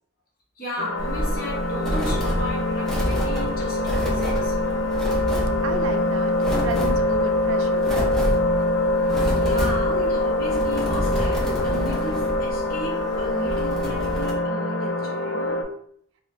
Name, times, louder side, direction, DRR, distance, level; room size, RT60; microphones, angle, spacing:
voice 1, 0.6-5.1 9.4-15.7, equal, 45° left, 1.0 m, -35 dB
sound 1, 0.8-15.6, left 1 dB, 65° left, 0.5 m, -24 dB
sound 2, 1.0-14.3, equal, ahead, 0.5 m, -29 dB
voice 2, 5.6-8.1, right 4 dB, 70° right, 0.3 m, -33 dB
3.7 x 2.1 x 3.1 m
head